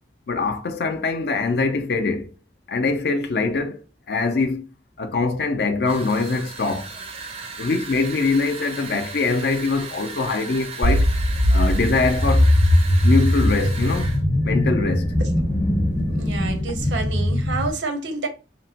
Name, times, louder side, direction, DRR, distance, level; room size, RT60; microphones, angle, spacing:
voice 1, 0.3-2.3 2.7-3.8 4.1-4.7 5.0-6.9 7.6-11.1 11.5-12.5 13.0-14.1 14.4-15.2, left 3 dB, 60° left, 0.4 m, -23 dB
sound 1, 5.8-14.2, right 4 dB, 30° right, 0.4 m, -36 dB
sound 2, 10.8-17.7, left 1 dB, 30° left, 0.8 m, -20 dB
voice 2, 16.1-18.3, right 3 dB, 80° right, 0.6 m, -29 dB
2.9 x 2.1 x 2.7 m
head